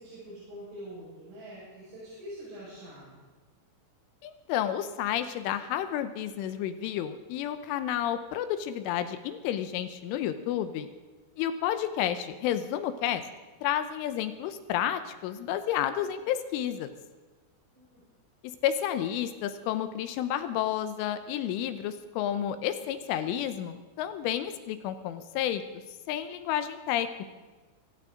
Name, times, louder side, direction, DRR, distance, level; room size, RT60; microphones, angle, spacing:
voice 1, 0.0-3.1 17.7-17.9, equal, 65° right, -8 dB, 7.6 m, -44 dB
voice 2, 4.2-10.9 11.4-13.2 13.6-16.9 18.6-25.6 26.1-27.2, left 10 dB, 80° left, 10 dB, 3.2 m, -31 dB
24.0 x 15.5 x 3.8 m, 1.3 s
omnidirectional pair, 5.8 m